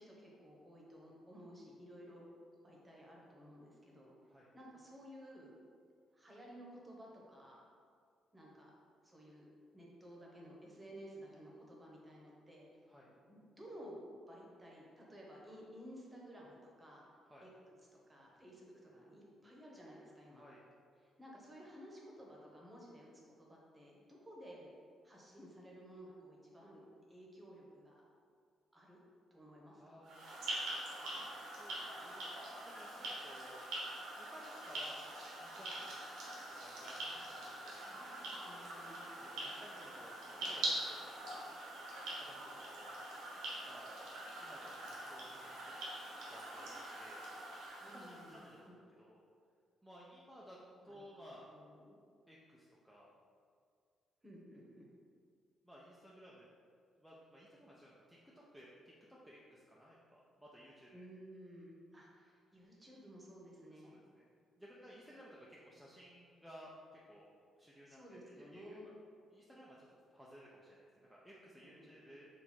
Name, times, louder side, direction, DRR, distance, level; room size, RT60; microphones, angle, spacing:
voice 1, 0.0-2.3 2.6-4.1 4.5-5.5 6.1-7.7 8.3-8.7 9.0-9.4 9.7-12.7 13.3-14.0 14.3-17.1 17.4-20.4 21.0-24.7 25.0-26.8 27.1-28.0 28.7-29.0 29.3-30.0 37.1-39.5 47.8-48.8 50.8-52.0 54.2-54.9 60.9-64.0 67.9-68.9 71.6-72.0, equal, 20° right, -3 dB, 1.1 m, -55 dB
voice 2, 29.8-30.3 31.5-32.2 32.6-33.6 34.2-35.0 35.4-36.0 36.6-36.9 37.4-37.8 39.2-41.1 42.1-43.0 43.6-43.9 44.4-45.7 46.3-47.3 47.8-49.2 49.8-50.6 50.8-51.5 52.3-53.1 55.6-56.5 57.0-61.0 63.7-64.3 64.6-67.3 67.6-68.0 68.4-68.9 69.3-72.3, equal, ahead, -6 dB, 0.6 m, -57 dB
sound 1, 30.0-48.5, right 1 dB, 90° right, 1.1 m, -44 dB
4.4 x 2.6 x 4.4 m, 2.2 s
cardioid pair, 90°, 0 cm